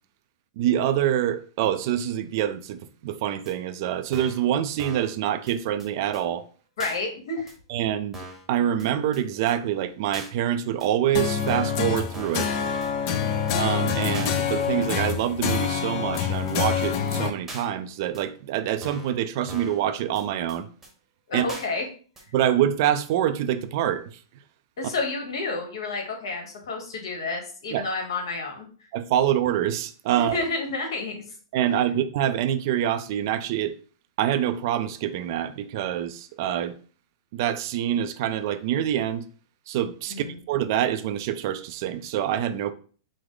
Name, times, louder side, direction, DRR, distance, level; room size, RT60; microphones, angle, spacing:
voice 1, 0.6-6.4 7.7-8.2 8.5-12.5 13.6-20.7 21.3-21.5 22.3-24.2 27.7-27.9 28.9-30.4 31.5-33.8 34.2-36.8 37.3-39.3 39.7-42.7, right 11 dB, 50° right, 0.4 m, -26 dB
sound 1, 3.5-3.6 4.1-4.5 4.8-5.1 5.5-5.6 5.8-5.9 6.1-6.2 6.8-7.0 7.5-7.6 8.1-8.5 8.8-8.9 9.1-9.2 9.5-9.6 10.1-10.3 10.8-10.9 11.5-11.8 12.1-12.5 12.8-12.9 13.1-13.2 13.5-13.6 14.1-14.3 14.8-14.9 15.5-15.8 16.1-16.2 16.5-16.6 16.8-16.9 17.5-17.6 18.1-18.2 18.8-19.1 19.5-19.8 20.2-20.3 20.5-20.6 20.8-20.9 21.5-21.7 22.2-22.3, right 2 dB, 10° right, 0.9 m, -40 dB
voice 2, 6.8-7.5 13.1-13.4 21.3-21.8 24.8-28.6 30.2-31.2 40.1-40.3, left 3 dB, 70° left, 1.4 m, -30 dB
sound 2, 11.1-17.3, left 7 dB, 40° left, 0.5 m, -26 dB
4.8 x 2.0 x 3.8 m
hypercardioid pair, 140°, 3 cm